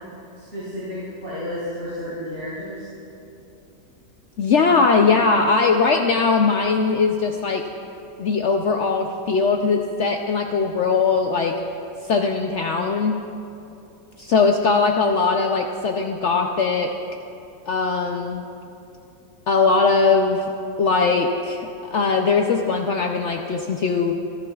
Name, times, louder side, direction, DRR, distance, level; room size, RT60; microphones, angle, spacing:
voice 1, 0.4-2.9, left 1 dB, 45° right, -12 dB, 4.2 m, -32 dB
voice 2, 4.4-7.6 8.2-11.5 12.1-13.2 14.2-16.9 17.7-18.4 19.5-20.4 20.8-24.1, left 4 dB, 80° left, 2 dB, 0.6 m, -20 dB
26.0 x 11.5 x 2.3 m, 2.8 s
omnidirectional pair, 1.9 m